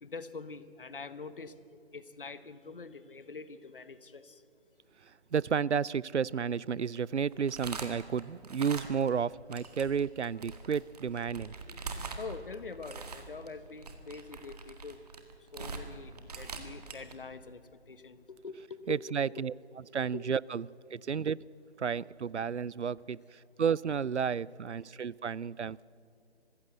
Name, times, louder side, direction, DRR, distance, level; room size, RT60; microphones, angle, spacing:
voice 1, 0.0-4.4 12.2-15.1 15.5-19.5 20.1-20.3, left 4 dB, 50° left, 14 dB, 1.1 m, -45 dB
voice 2, 5.3-11.5 18.9-19.5 19.9-20.6 20.9-21.4 21.8-23.2 23.6-25.8, right 7 dB, 80° right, 24 dB, 0.5 m, -32 dB
sound 1, 6.9-9.2 9.5-17.1, right 4 dB, 35° right, 1.8 m, -43 dB
23.5 x 15.5 x 8.0 m, 2.5 s
figure-of-eight pair, 150°, 34 cm